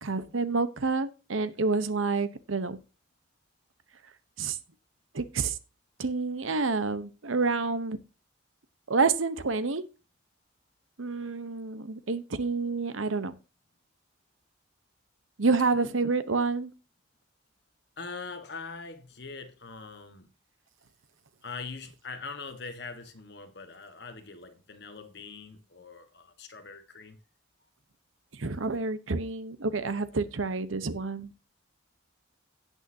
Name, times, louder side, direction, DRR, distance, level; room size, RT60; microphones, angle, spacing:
voice 1, 0.0-2.8 4.4-4.6 5.1-5.6 6.0-8.0 8.9-9.8 11.0-13.3 15.4-16.7 28.3-31.3, right 4 dB, 85° right, 0.9 m, -28 dB
voice 2, 18.0-20.3 21.4-27.2, left 4 dB, 55° left, 1.4 m, -42 dB
17.0 x 6.4 x 2.7 m
head